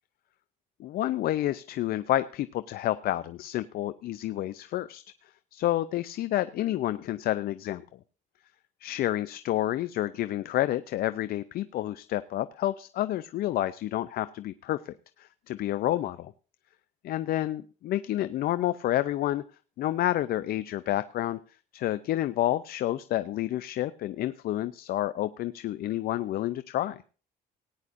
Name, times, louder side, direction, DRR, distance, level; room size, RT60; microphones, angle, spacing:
voice 1, 0.8-5.0 5.5-8.0 8.8-16.3 17.0-19.4 19.8-21.4 21.7-27.0, left 14 dB, 65° left, 14 dB, 0.5 m, -29 dB
18.5 x 9.8 x 2.6 m, 0.37 s
cardioid pair, 110°, 17 cm